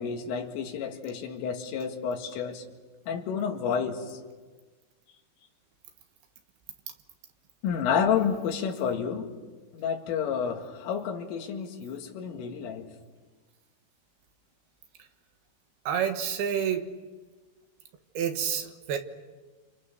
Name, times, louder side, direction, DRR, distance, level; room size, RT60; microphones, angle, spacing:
voice 1, 0.0-2.6 3.1-4.2 7.6-9.3 9.7-12.9, left 7 dB, 80° left, 4.5 m, -30 dB
voice 2, 15.9-17.0 18.1-19.0, right 8 dB, 65° right, 2.9 m, -29 dB
29.5 x 27.0 x 6.7 m
omnidirectional pair, 5.7 m